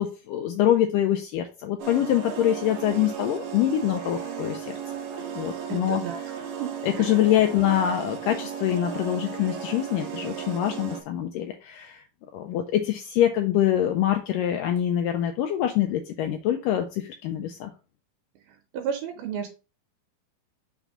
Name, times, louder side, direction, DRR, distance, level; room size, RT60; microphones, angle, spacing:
voice 1, 0.0-4.8 5.4-6.0 6.8-12.0 12.3-17.7, left 11 dB, 85° left, 5 dB, 2.0 m, -25 dB
sound 1, 1.8-11.0, right 8 dB, 65° right, 2.2 m, -35 dB
voice 2, 5.7-6.2 6.6-6.7 7.0-7.2 18.7-19.5, right 7 dB, 85° right, 4 dB, 2.8 m, -32 dB
6.0 x 3.6 x 5.4 m, 0.32 s
omnidirectional pair, 4.4 m